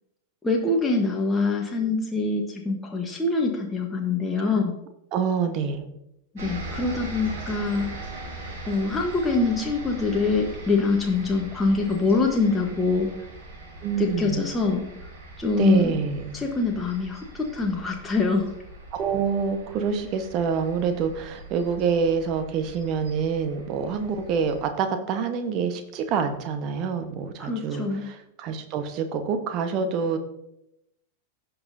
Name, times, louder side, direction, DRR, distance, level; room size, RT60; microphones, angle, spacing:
voice 1, 0.4-4.7 6.3-8.0 8.7-13.1 13.9-14.8 15.4-15.9 16.3-18.5 27.4-28.1, left 3 dB, 10° left, 0 dB, 1.1 m, -24 dB
voice 2, 5.1-5.9 13.8-14.4 15.6-16.3 18.9-30.2, right 6 dB, 40° right, 7 dB, 1.1 m, -26 dB
sound 1, 6.4-24.7, right 2 dB, 55° right, 3.8 m, -41 dB
16.5 x 5.7 x 2.7 m, 0.83 s
figure-of-eight pair, 90°, 0 cm